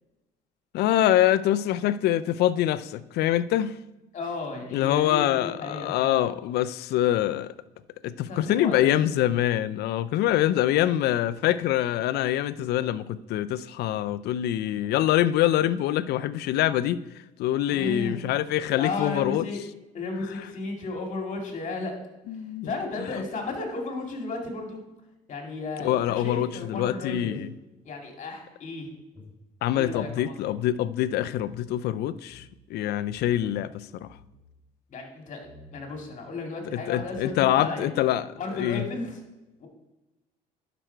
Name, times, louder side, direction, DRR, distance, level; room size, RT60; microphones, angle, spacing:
voice 1, 0.7-3.7 4.7-7.5 8.0-17.0 17.4-19.5 22.3-22.7 23.0-23.1 25.8-27.5 29.6-32.4 32.7-34.1 36.7-38.9, left 12 dB, 75° left, 0.4 m, -25 dB
voice 2, 4.1-6.1 8.3-8.9 17.7-18.2 18.8-19.6 19.9-21.9 22.6-24.8 25.3-27.4 27.8-28.9 29.7-30.5 34.9-35.4 35.7-37.9 38.4-39.2 39.6-39.7, left 3 dB, 45° left, 2.2 m, -34 dB
sound 1, 29.1-31.6 31.9-32.0 32.2-32.5 33.1-33.6 33.9-34.5 35.4-35.8 36.6-36.7 37.0-37.6, left 2 dB, 10° left, 3.2 m, -53 dB
11.0 x 5.1 x 4.5 m
cardioid pair, 110°, 17 cm